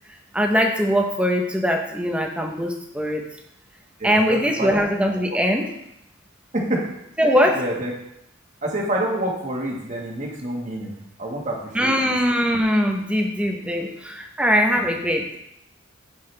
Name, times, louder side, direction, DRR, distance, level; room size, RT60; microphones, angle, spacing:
voice 1, 0.3-3.2 4.0-5.7 7.2-7.6 11.7-15.4, equal, 5° right, 2 dB, 0.9 m, -21 dB
voice 2, 4.0-4.8 6.5-6.8 7.2-7.9 8.6-12.1 14.7-15.0, right 1 dB, 35° right, -1 dB, 1.6 m, -28 dB
7.7 x 7.5 x 3.3 m, 0.79 s
head